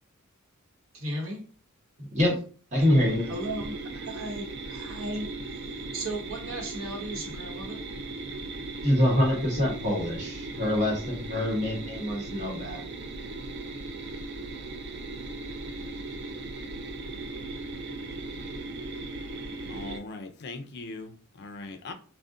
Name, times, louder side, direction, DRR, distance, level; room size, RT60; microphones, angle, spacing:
voice 1, 0.9-1.4 2.9-7.9, right 1 dB, 75° right, 0.9 m, -36 dB
voice 2, 2.0-2.4 2.7-3.2 8.8-12.8, left 1 dB, 35° right, 1.1 m, -25 dB
sound 1, 2.7-20.0, right 2 dB, 50° right, 0.4 m, -38 dB
voice 3, 19.7-21.9, left 3 dB, 50° left, 0.4 m, -40 dB
2.4 x 2.1 x 3.6 m
head